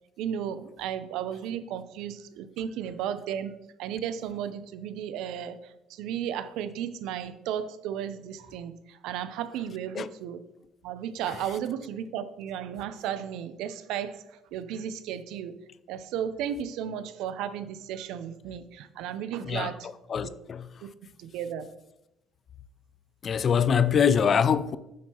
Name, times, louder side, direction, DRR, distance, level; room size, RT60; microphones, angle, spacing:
voice 1, 0.2-10.4 10.8-15.5 15.9-19.9 20.2-20.3 20.8-20.9 21.2-21.7, right 9 dB, 80° right, 0.5 m, -34 dB
voice 2, 19.5-20.7 23.2-24.8, left 7 dB, 40° left, 0.3 m, -24 dB
7.5 x 5.3 x 2.9 m
cardioid pair, 120°, 0 cm